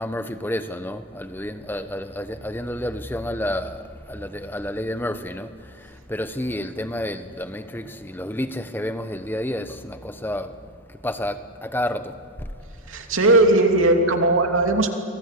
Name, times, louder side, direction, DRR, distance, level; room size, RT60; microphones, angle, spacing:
voice 1, 0.0-3.8 4.1-5.5 6.1-10.5 11.0-12.1, left 1 dB, 10° left, 9 dB, 1.0 m, -29 dB
voice 2, 12.9-14.9, right 2 dB, 85° right, 3 dB, 2.9 m, -18 dB
29.5 x 24.0 x 8.4 m, 2.4 s
head